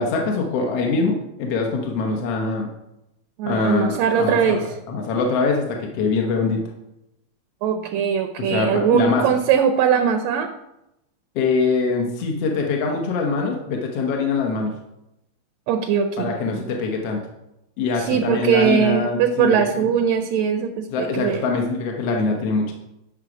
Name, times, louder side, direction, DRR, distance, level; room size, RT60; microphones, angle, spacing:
voice 1, 0.0-2.7 3.5-6.6 8.4-9.3 11.4-14.7 16.2-17.2 17.8-19.8 20.9-22.7, left 4 dB, 65° left, 1 dB, 2.0 m, -23 dB
voice 2, 3.4-4.7 7.6-10.5 15.7-16.6 18.0-21.4, right 7 dB, 75° right, 7 dB, 1.8 m, -20 dB
11.0 x 6.6 x 4.8 m, 0.89 s
omnidirectional pair, 3.3 m